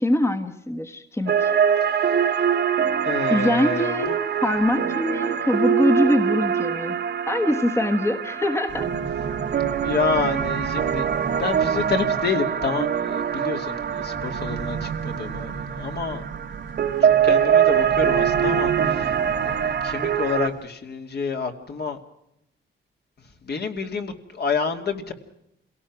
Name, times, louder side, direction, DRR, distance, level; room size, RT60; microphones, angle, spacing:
voice 1, 0.0-1.5 3.3-4.1 4.4-7.0 7.3-8.9, left 1 dB, 10° left, 7 dB, 1.3 m, -23 dB
sound 1, 1.3-20.5, right 8 dB, 50° right, 1.2 m, -23 dB
voice 2, 1.9-2.5 3.0-4.2 9.8-16.2 17.0-19.2 19.4-22.0 23.4-25.1, left 5 dB, 50° left, 5 dB, 2.6 m, -29 dB
sound 2, 8.7-20.6, right 6 dB, 65° right, 1.6 m, -35 dB
27.5 x 17.5 x 6.2 m, 0.79 s
cardioid pair, 115°, 21 cm